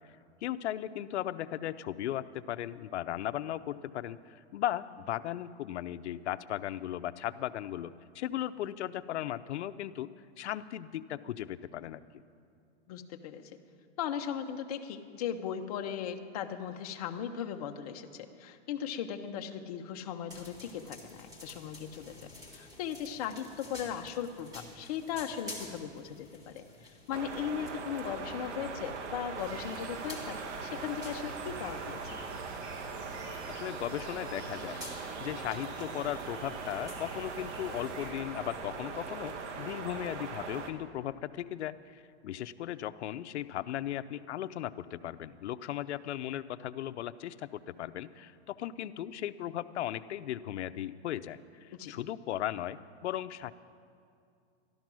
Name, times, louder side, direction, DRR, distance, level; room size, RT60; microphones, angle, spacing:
voice 1, 0.4-10.1 10.4-12.0 33.5-53.5, left 12 dB, 75° left, 12 dB, 0.6 m, -37 dB
voice 2, 12.9-13.5 14.0-22.1 22.5-32.0 51.7-51.9, left 9 dB, 35° left, 5 dB, 0.7 m, -38 dB
sound 1, 20.3-39.8, left 2 dB, 10° right, 1.6 m, -52 dB
sound 2, 27.1-40.7, right 4 dB, 90° right, 1.5 m, -40 dB
sound 3, 29.4-38.1, right 2 dB, 65° right, 3.2 m, -49 dB
13.0 x 12.5 x 6.1 m, 2.4 s
supercardioid pair, 170°, 34 cm